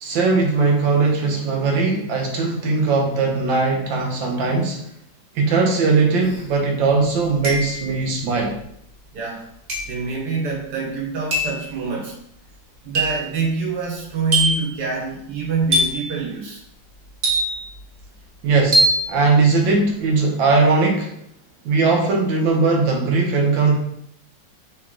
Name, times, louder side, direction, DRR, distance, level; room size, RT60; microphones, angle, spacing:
voice 1, 0.0-4.8 5.3-8.6 18.4-21.1 21.6-23.8, right 4 dB, 80° right, 1 dB, 1.5 m, -19 dB
sound 1, 6.3-6.4 7.4-8.0 9.7-10.0 11.3-11.6 12.9-13.3 14.3-14.7 15.7-16.1 17.2-17.8 18.7-19.1, right 1 dB, 35° right, 1.0 m, -21 dB
voice 2, 9.1-9.5 9.8-12.1 12.8-16.6, right 4 dB, 60° right, -3 dB, 1.7 m, -26 dB
4.1 x 3.1 x 3.6 m, 0.73 s
omnidirectional pair, 2.0 m